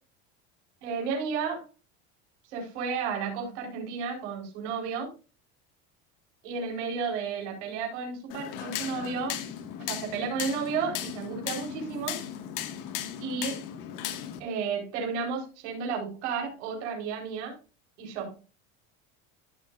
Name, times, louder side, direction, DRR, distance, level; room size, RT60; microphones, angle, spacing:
voice 1, 0.8-1.7 2.5-5.1 6.4-9.4 9.8-12.2 13.2-13.6 14.4-17.6 18.0-18.4, right 5 dB, 85° right, 0 dB, 4.6 m, -32 dB
sound 1, 8.3-14.4, left 10 dB, 65° left, 2.0 m, -36 dB
15.0 x 6.8 x 2.6 m, 0.32 s
supercardioid pair, 125°, 34 cm